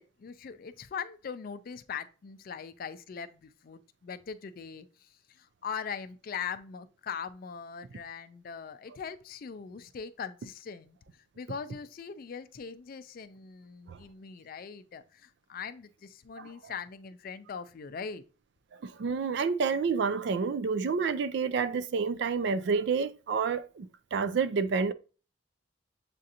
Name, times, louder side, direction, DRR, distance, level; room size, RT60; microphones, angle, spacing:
voice 1, 0.0-18.2, left 6 dB, 45° left, 0.3 m, -41 dB
voice 2, 18.8-24.9, right 5 dB, 60° right, 0.3 m, -29 dB
7.5 x 2.5 x 2.7 m
head